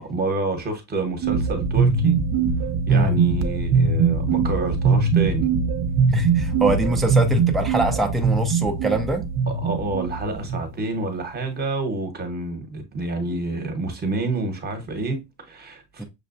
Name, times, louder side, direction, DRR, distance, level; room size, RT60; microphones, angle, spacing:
voice 1, 0.0-2.2 2.9-5.5 9.5-16.0, right 2 dB, 25° right, 1.0 m, -28 dB
sound 1, 1.2-10.8, right 5 dB, 45° right, 0.6 m, -21 dB
voice 2, 6.1-9.2 16.0-16.1, right 2 dB, ahead, 0.3 m, -24 dB
6.5 x 2.2 x 2.5 m
cardioid pair, 140°, 40 cm